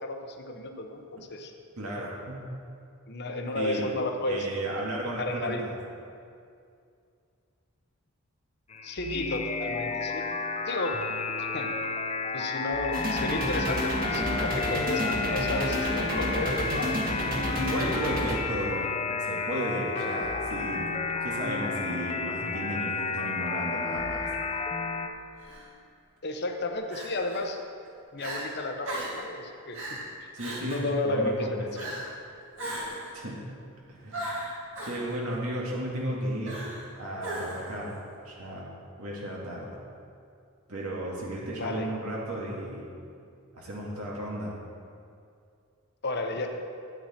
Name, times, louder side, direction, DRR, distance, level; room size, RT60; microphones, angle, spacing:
voice 1, 0.0-1.5 3.1-4.5 5.2-5.6 8.8-11.0 11.4-11.7 12.3-16.9 26.2-27.6 28.1-30.0 30.6-31.9 41.5-41.9 46.0-46.5, left 2 dB, 50° left, 4 dB, 1.0 m, -32 dB
voice 2, 1.8-2.4 3.6-3.8 4.3-5.7 17.5-18.9 19.2-20.9 21.2-24.3 30.3-31.5 33.1-33.4 33.9-34.2 34.8-36.7 37.0-38.0 38.2-38.7 39.0-39.7 40.7-42.9 43.5-44.5, right 1 dB, 80° right, -4 dB, 2.1 m, -34 dB
sound 1, 8.7-25.1, left 4 dB, 30° left, 0.7 m, -31 dB
sound 2, 12.9-18.4, equal, 40° right, 1.6 m, -30 dB
Crying sobbing, 25.4-25.6 26.9-27.4 27.8-27.9 28.2-28.4 28.8-29.2 29.7-30.0 30.4-30.9 31.7-32.1 32.6-33.1 34.1-35.0 36.4-36.9 37.2-37.7, right 1 dB, 60° right, 2.8 m, -36 dB
12.5 x 9.0 x 4.4 m, 2.4 s
head